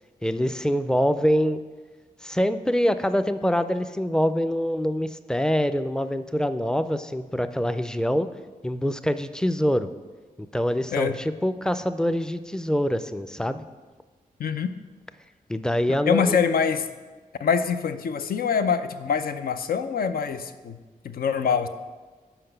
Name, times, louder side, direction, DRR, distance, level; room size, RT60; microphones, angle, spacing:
voice 1, 0.2-1.6 2.2-8.3 8.6-9.9 10.5-13.6 15.5-16.4, equal, 5° left, 11 dB, 0.4 m, -25 dB
voice 2, 14.4-14.7 16.1-16.9 17.4-20.8 21.0-21.7, left 6 dB, 75° left, 9 dB, 0.5 m, -24 dB
5.8 x 5.0 x 6.7 m, 1.3 s
cardioid pair, 60°, 15 cm